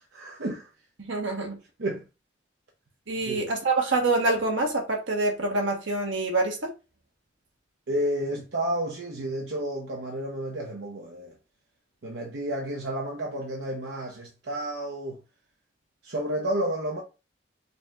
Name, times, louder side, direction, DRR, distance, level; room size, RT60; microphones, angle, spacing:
voice 1, 0.1-0.7 1.8-2.0 3.2-3.5 7.9-11.3 12.0-15.2 16.0-17.0, right 1 dB, 70° right, 0.7 m, -31 dB
voice 2, 1.0-1.6 3.1-6.7, right 2 dB, 85° right, 1.2 m, -26 dB
5.2 x 2.8 x 2.3 m
head